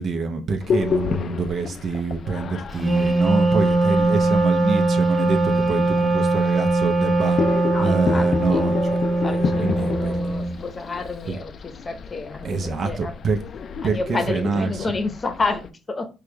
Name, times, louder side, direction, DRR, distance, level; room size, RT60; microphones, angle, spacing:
voice 1, 0.0-7.4 7.8-9.0 9.6-10.2 10.4-10.6 11.3-11.4 12.4-13.4 13.8-14.9, right 4 dB, 55° right, 0.8 m, -26 dB
sound 1, 0.6-15.7, left 6 dB, 55° left, 0.3 m, -31 dB
Wind instrument woodwind instrument, 2.7-10.6, right 2 dB, 15° right, 1.5 m, -21 dB
voice 2, 7.7-8.7 9.2-13.2 13.8-16.1, left 3 dB, 30° left, 0.8 m, -30 dB
4.8 x 2.3 x 3.2 m
supercardioid pair, 75°, 0 cm